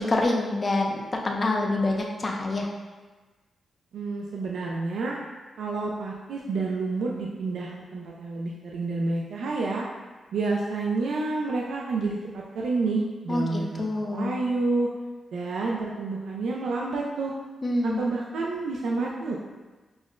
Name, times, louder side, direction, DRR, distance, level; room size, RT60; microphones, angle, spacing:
voice 1, 0.0-2.7 13.3-14.4 17.6-18.1, left 2 dB, 30° left, 0 dB, 0.4 m, -26 dB
voice 2, 3.9-5.2 5.6-9.9 10.3-14.9 15.3-17.3 17.8-19.4, right 3 dB, 80° right, -2 dB, 0.3 m, -29 dB
6.0 x 2.1 x 2.4 m, 1.3 s
wide cardioid pair, 150°, 0 cm